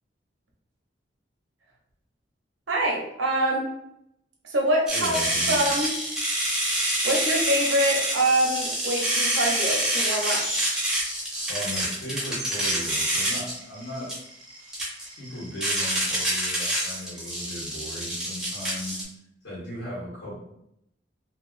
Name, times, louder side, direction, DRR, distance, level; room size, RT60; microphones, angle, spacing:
voice 1, 2.7-3.7 4.4-5.2 5.5-5.9 7.0-10.4, right 1 dB, 85° right, -1 dB, 0.7 m, -25 dB
voice 2, 4.9-5.6 11.5-14.2 15.0-19.0 19.4-20.3, equal, 75° left, -7 dB, 1.4 m, -37 dB
sound 1, 4.9-19.0, right 1 dB, 5° right, 0.6 m, -27 dB
2.8 x 2.5 x 2.4 m, 0.77 s
head